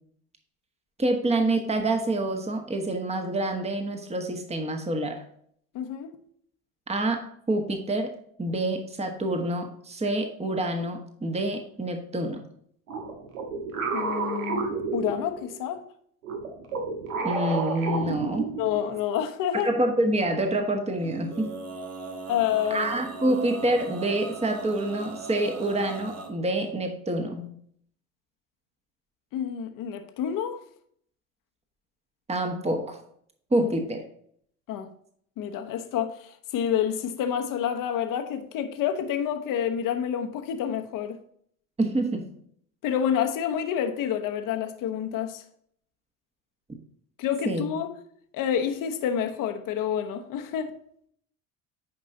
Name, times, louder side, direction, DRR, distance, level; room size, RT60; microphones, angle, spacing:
voice 1, 1.0-5.2 6.9-8.1 8.4-12.4 17.2-18.5 19.6-21.5 22.7-27.5 32.3-33.0 33.5-34.0 41.8-42.3 47.4-47.7, right 1 dB, 15° right, 1.4 m, -27 dB
voice 2, 5.7-6.2 13.9-15.9 18.6-19.7 22.3-22.9 29.3-30.6 33.6-33.7 34.7-34.9 35.4-41.2 42.8-45.4 47.2-47.9 48.3-50.8, left 9 dB, 50° left, 1.2 m, -28 dB
sound 1, 12.9-15.6 16.2-18.9, right 4 dB, 80° right, 1.4 m, -31 dB
Male singing, 21.0-26.3, right 4 dB, 35° right, 1.6 m, -39 dB
9.7 x 5.3 x 2.8 m
hypercardioid pair, 65°, 41 cm